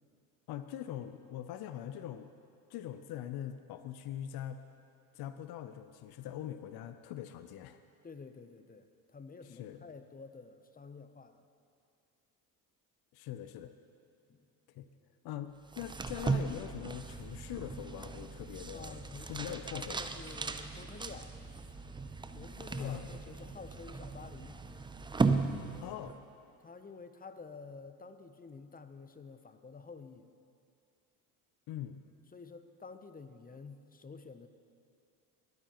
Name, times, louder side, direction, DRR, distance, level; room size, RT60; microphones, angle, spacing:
voice 1, 0.5-2.3 2.7-4.6 5.1-7.8 9.5-9.8 13.1-13.7 14.7-14.9 15.2-20.1 22.8-23.1 25.8-26.2 31.7-32.0, left 11 dB, 55° left, 10 dB, 0.6 m, -42 dB
voice 2, 8.0-11.4 14.3-14.4 18.7-21.4 22.3-24.6 25.5-26.0 26.6-30.3 32.3-34.5, left 4 dB, 20° left, 10 dB, 0.7 m, -50 dB
sound 1, 15.7-26.2, right 4 dB, 10° right, 0.5 m, -37 dB
20.5 x 9.1 x 3.0 m, 2.4 s
supercardioid pair, 75°, 45 cm